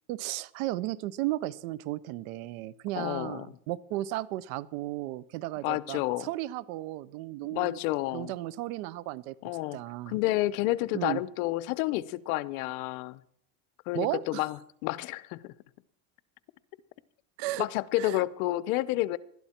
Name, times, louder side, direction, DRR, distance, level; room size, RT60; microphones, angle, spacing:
voice 1, 0.1-7.8 8.1-9.3 9.7-10.1 10.9-11.2 13.9-14.4 17.4-17.7 18.0-18.2, right 16 dB, 70° right, 20 dB, 0.8 m, -34 dB
voice 2, 3.0-3.5 5.6-6.3 7.5-8.3 9.4-9.8 10.1-13.2 13.9-15.5 17.6-19.2, left 17 dB, 75° left, 18 dB, 0.8 m, -30 dB
20.0 x 12.5 x 4.4 m, 0.70 s
supercardioid pair, 135°, 43 cm